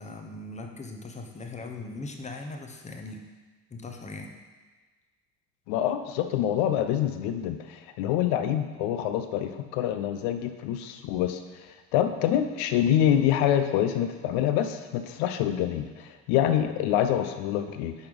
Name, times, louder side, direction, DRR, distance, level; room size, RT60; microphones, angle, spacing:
voice 1, 0.0-3.3 3.7-4.4, left 2 dB, 15° left, 3 dB, 0.9 m, -39 dB
voice 2, 5.7-11.4 11.9-17.9, left 10 dB, 50° left, 8 dB, 0.7 m, -26 dB
5.9 x 5.5 x 5.0 m, 1.3 s
figure-of-eight pair, 65°, 50 cm